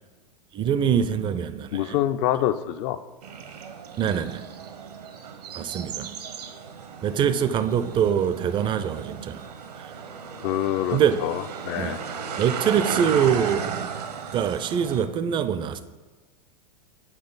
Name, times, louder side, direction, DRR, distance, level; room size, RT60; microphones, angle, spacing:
voice 1, 0.5-2.0 4.0-4.5 5.5-6.2 7.0-9.5 9.8-9.9 10.9-11.2 11.8-12.0 12.4-13.9 14.3-15.8, right 8 dB, 25° right, 13 dB, 0.4 m, -24 dB
voice 2, 1.7-3.0 10.4-12.0, left 12 dB, 40° left, 12 dB, 0.4 m, -26 dB
sound 1, 3.2-15.0, right 6 dB, 75° right, 0.9 m, -35 dB
8.9 x 5.0 x 4.0 m, 1.3 s
figure-of-eight pair, 95°, 21 cm